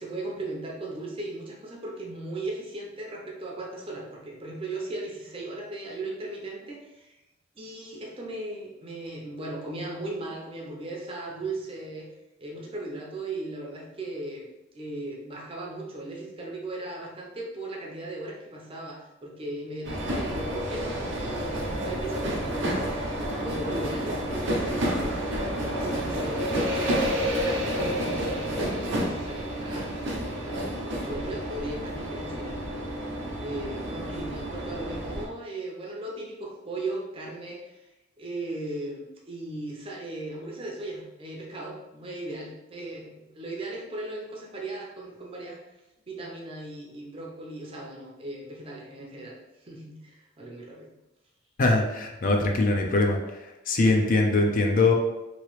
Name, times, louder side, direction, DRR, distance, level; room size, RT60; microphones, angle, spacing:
voice 1, 0.0-7.1 7.6-12.1 12.4-14.5 14.7-23.0 23.4-30.1 30.5-32.9 33.4-37.8 38.2-45.6 46.1-49.4 49.7-50.9, right 2 dB, 30° right, -2 dB, 0.6 m, -37 dB
sound 1, 19.8-35.3, equal, 65° right, 0.7 m, -30 dB
voice 2, 51.6-53.2 53.7-54.9, left 2 dB, 45° left, 2 dB, 0.4 m, -22 dB
3.0 x 2.8 x 3.1 m, 0.97 s
head